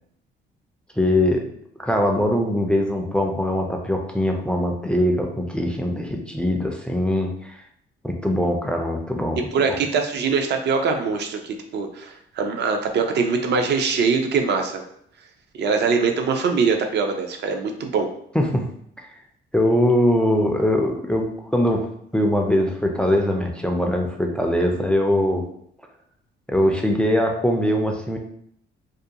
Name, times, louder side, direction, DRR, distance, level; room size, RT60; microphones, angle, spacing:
voice 1, 1.0-1.4 1.8-7.6 8.0-9.8 18.3-18.7 19.0-19.1 19.5-21.9 22.1-25.4 26.5-28.2, left 1 dB, 5° left, 2 dB, 0.3 m, -22 dB
voice 2, 9.5-14.8 15.6-18.1, right 5 dB, 60° right, 5 dB, 0.5 m, -22 dB
2.4 x 2.2 x 2.7 m, 0.70 s
cardioid pair, 90°, 20 cm